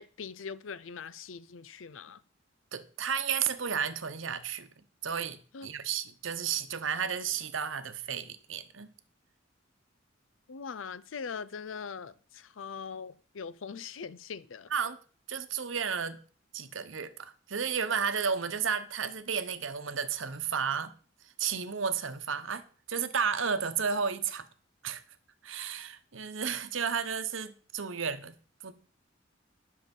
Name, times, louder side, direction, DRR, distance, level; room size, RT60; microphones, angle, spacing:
voice 1, 0.0-2.2 5.5-5.7 10.5-14.7, left 6 dB, 85° left, 0.5 m, -41 dB
voice 2, 2.7-4.7 5.0-8.9 14.7-15.0 15.3-16.2 16.5-20.9 21.4-22.6 22.9-24.5 24.8-25.0 25.4-28.3 28.6-28.7, right 6 dB, 80° right, 0.9 m, -32 dB
10.5 x 6.7 x 5.3 m
head